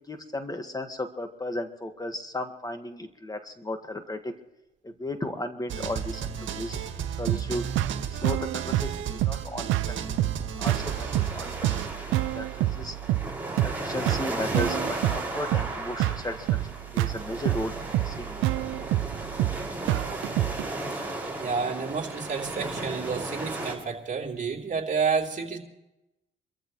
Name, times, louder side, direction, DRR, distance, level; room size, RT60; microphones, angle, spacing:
voice 1, 0.1-4.3 4.8-6.8 7.1-7.6 8.1-10.8 11.2-11.9 12.3-13.0 13.6-16.6 16.9-18.4 18.7-18.9, left 1 dB, 20° left, 7 dB, 1.7 m, -35 dB
sound 1, 5.7-11.9, right 8 dB, 70° right, 1.8 m, -34 dB
sound 2, 7.3-20.7, right 15 dB, 90° right, 0.5 m, -28 dB
sound 3, 10.6-23.7, right 2 dB, 10° right, 5.8 m, -35 dB
voice 2, 21.4-25.6, right 5 dB, 40° right, 0 dB, 3.3 m, -29 dB
26.5 x 14.0 x 3.1 m, 0.95 s
cardioid pair, 90°, 20 cm